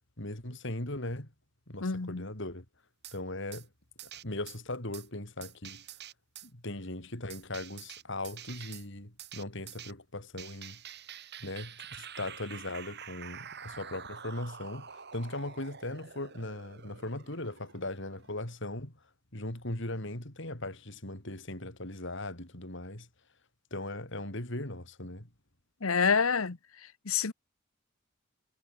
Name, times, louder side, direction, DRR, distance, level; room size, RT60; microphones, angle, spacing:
voice 1, 0.2-1.3 1.7-2.6 3.1-3.7 4.2-5.8 6.4-10.8 11.4-19.0 19.3-23.1 23.7-25.3, left 1 dB, 60° left, 4.4 m, -39 dB
voice 2, 1.8-2.2 25.8-26.6 27.0-27.3, left 5 dB, 85° left, 1.1 m, -27 dB
sound 1, 3.0-3.2 3.5-3.7 4.0-4.6 4.9-5.1 5.4-6.5 7.3-8.9 9.2-9.9 10.4-18.5, right 8 dB, 50° right, 4.9 m, -47 dB
head